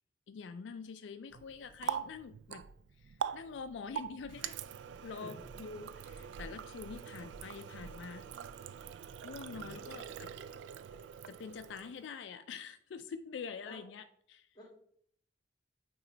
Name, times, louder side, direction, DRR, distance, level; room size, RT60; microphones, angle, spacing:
voice 1, 0.3-2.6 3.0-4.6 5.0-8.3 9.2-10.3 11.3-14.5, left 5 dB, 85° left, 10 dB, 0.4 m, -46 dB
Water tap faucet, 1.3-12.1, right 8 dB, 85° right, 0.3 m, -43 dB
voice 2, 5.0-5.6 9.5-10.3 13.6-13.9 14.5-14.7, equal, 20° left, -2 dB, 2.1 m, -53 dB
8.9 x 3.1 x 3.8 m, 0.67 s
head